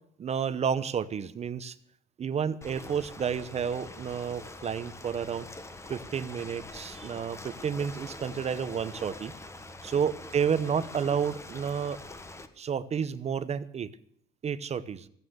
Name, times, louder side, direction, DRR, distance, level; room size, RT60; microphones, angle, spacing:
voice 1, 0.2-1.8 2.2-5.5 5.9-9.3 9.8-12.0 12.6-13.9 14.4-15.1, right 7 dB, 40° right, 14 dB, 0.9 m, -31 dB
Ocean, 2.6-12.5, left 2 dB, 15° left, 1.5 m, -44 dB
15.5 x 9.5 x 8.0 m, 0.66 s
cardioid pair, 110°, 17 cm